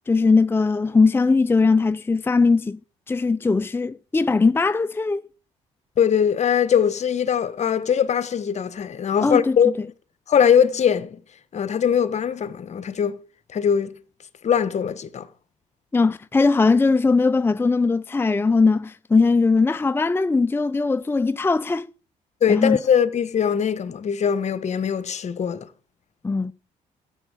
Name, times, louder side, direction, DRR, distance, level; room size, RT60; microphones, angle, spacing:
voice 1, 0.1-2.8 3.1-5.2 9.2-9.6 15.9-21.9 22.5-22.8 26.2-26.5, left 4 dB, 15° left, 0.5 m, -19 dB
voice 2, 6.0-9.7 10.3-11.2 11.5-13.2 13.5-14.0 14.4-15.3 22.4-25.7, left 8 dB, 50° left, 1.2 m, -21 dB
13.5 x 7.3 x 7.6 m
supercardioid pair, 75°, 15 cm